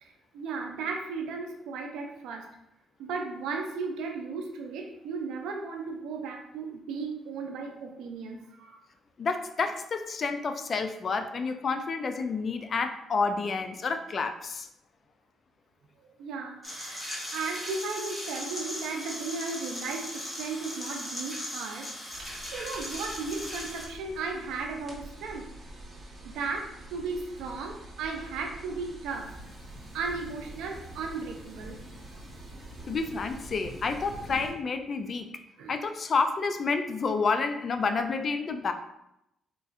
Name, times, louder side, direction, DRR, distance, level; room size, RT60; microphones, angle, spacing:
voice 1, 0.0-2.5 3.0-8.8 12.1-12.3 16.2-17.1 17.3-22.2 22.5-25.5 26.2-29.3 29.9-31.8 35.6-35.7, right 4 dB, 90° right, 2 dB, 0.5 m, -35 dB
voice 2, 9.2-14.7 32.9-35.3 35.7-38.7, left 4 dB, 45° left, 8 dB, 0.3 m, -29 dB
sound 1, 16.6-23.9, left 1 dB, 15° left, 1.1 m, -38 dB
sound 2, 22.1-34.5, right 1 dB, 35° right, 1.0 m, -47 dB
sound 3, 29.1-34.5, equal, 15° right, 1.4 m, -48 dB
3.7 x 2.4 x 2.5 m, 0.82 s
cardioid pair, 90°, 0 cm